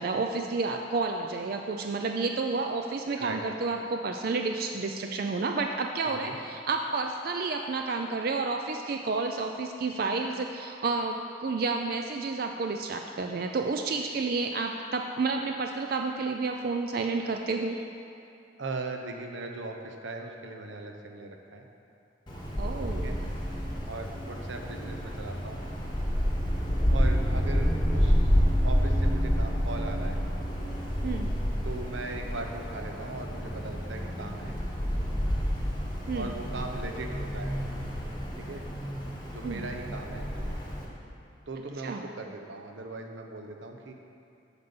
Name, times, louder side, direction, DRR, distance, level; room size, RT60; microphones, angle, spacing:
voice 1, 0.0-17.8 22.6-23.2 31.0-31.3 36.1-36.3 39.4-39.7 41.8-42.0, right 3 dB, 50° right, 4 dB, 0.3 m, -30 dB
voice 2, 6.0-6.4 18.6-21.6 23.0-23.1 23.9-25.6 26.9-30.2 31.6-34.6 36.1-37.6 38.4-38.6 39.3-40.6 41.5-43.9, right 2 dB, 70° right, 3 dB, 0.8 m, -39 dB
Wind, 22.3-40.8, equal, 20° left, 1.1 m, -29 dB
8.1 x 5.4 x 6.8 m, 2.6 s
head